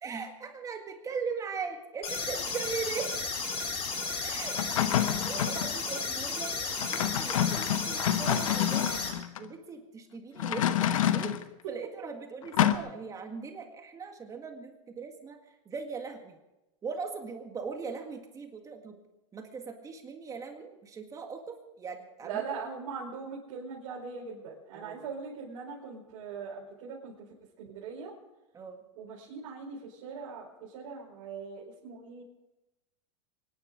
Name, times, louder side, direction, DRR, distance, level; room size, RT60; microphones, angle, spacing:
voice 1, 0.0-3.4 4.2-8.9 9.4-11.3 11.7-15.4 15.7-16.4 16.8-19.0 19.3-22.4 24.7-25.1 28.5-28.8, right 5 dB, 20° right, 4 dB, 1.8 m, -39 dB
sound 1, 2.0-9.1, left 4 dB, 35° left, 4.3 m, -33 dB
sound 2, 4.6-5.7 6.7-9.4 10.4-11.4 12.5-12.8, left 11 dB, 85° left, 1.1 m, -28 dB
voice 2, 22.2-27.1 27.6-28.1 28.9-32.2, right 5 dB, 60° right, -5 dB, 5.0 m, -40 dB
24.0 x 11.0 x 5.3 m, 0.99 s
supercardioid pair, 130°, 17 cm